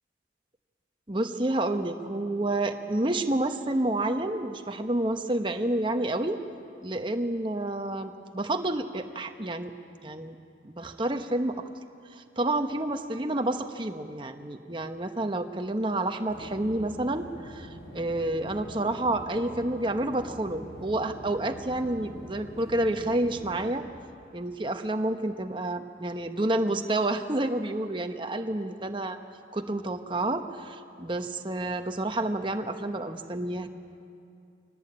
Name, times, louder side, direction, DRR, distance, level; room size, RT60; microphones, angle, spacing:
voice 1, 1.1-6.4 6.8-9.7 10.0-11.6 12.1-23.8 24.3-29.2 29.5-33.7, right 1 dB, 25° right, 6 dB, 1.0 m, -29 dB
sound 1, 16.3-23.7, equal, 75° left, 7.3 m, -44 dB
23.5 x 18.5 x 8.7 m, 2.5 s
head